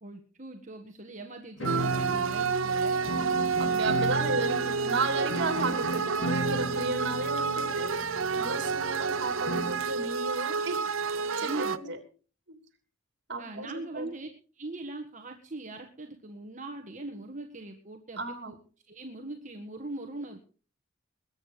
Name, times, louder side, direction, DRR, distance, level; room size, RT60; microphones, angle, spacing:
voice 1, 0.0-3.3 11.4-11.8 13.4-14.3 14.5-18.6 18.9-20.4, right 2 dB, 35° right, 3 dB, 1.5 m, -41 dB
sound 1, 1.6-10.0, equal, 65° left, 2.7 m, -36 dB
sound 2, 1.6-11.8, right 5 dB, 70° right, 0.8 m, -29 dB
voice 2, 3.6-10.8 11.4-12.0 12.5-12.6 13.3-14.1 18.2-18.6, right 3 dB, 55° right, 7 dB, 3.1 m, -34 dB
21.0 x 9.2 x 5.0 m, 0.39 s
head